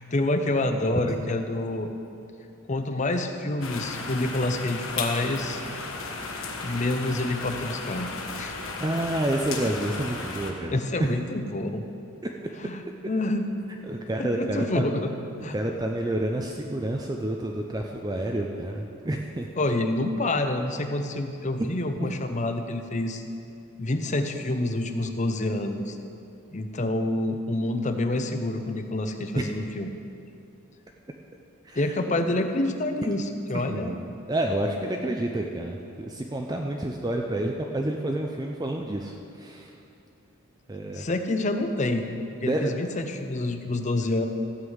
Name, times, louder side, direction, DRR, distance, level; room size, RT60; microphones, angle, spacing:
voice 1, 0.0-1.9 2.7-5.6 6.6-8.1 8.4-8.6 10.7-11.9 12.6-13.5 14.2-15.1 15.4-15.6 19.6-23.2 23.8-26.0 26.5-29.9 31.7-33.9 40.9-42.0 42.4-44.3, left 2 dB, 35° left, 7 dB, 0.7 m, -27 dB
sound 1, 3.6-10.5, left 3 dB, 65° left, 1.3 m, -35 dB
voice 2, 8.8-11.1 12.6-12.7 13.8-14.9 15.5-19.5 22.0-22.2 29.4-29.5 31.6-31.9 33.5-39.8 40.7-41.1 42.4-42.8, right 1 dB, 20° right, 1 dB, 0.5 m, -29 dB
14.5 x 5.4 x 7.9 m, 2.7 s
head